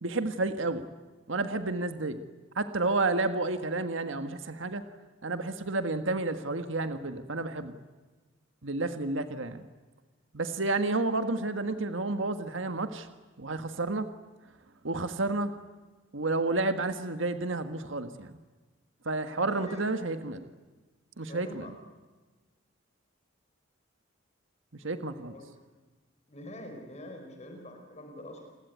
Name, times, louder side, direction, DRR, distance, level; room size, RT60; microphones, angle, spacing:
voice 1, 0.0-0.8 1.3-2.2 2.5-4.8 5.2-7.8 8.6-9.6 10.3-13.1 13.4-14.1 14.8-15.5 16.1-18.4 19.0-20.5 21.2-21.7 24.8-25.3, right 2 dB, 75° right, 8 dB, 1.6 m, -30 dB
voice 2, 19.4-20.0 21.2-21.7 24.8-24.9 25.2-25.4 26.3-28.5, left 1 dB, 35° left, 4 dB, 4.9 m, -45 dB
29.0 x 21.0 x 9.4 m, 1.3 s
head